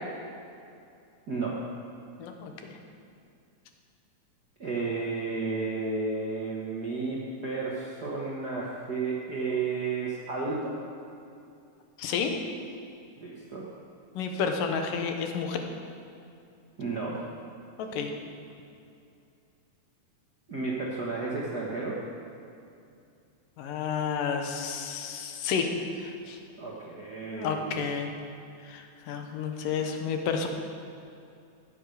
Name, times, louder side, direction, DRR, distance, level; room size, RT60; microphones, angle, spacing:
voice 1, 1.3-1.6 4.6-10.8 13.2-13.6 16.8-17.2 20.5-22.0 26.6-27.9, right 4 dB, 60° right, -5 dB, 1.0 m, -32 dB
voice 2, 2.2-2.8 12.0-12.3 14.2-15.6 17.8-18.1 23.6-26.4 27.3-28.1 28.6-30.5, left 6 dB, 85° left, 4 dB, 2.7 m, -31 dB
14.0 x 7.9 x 6.5 m, 2.5 s
omnidirectional pair, 3.8 m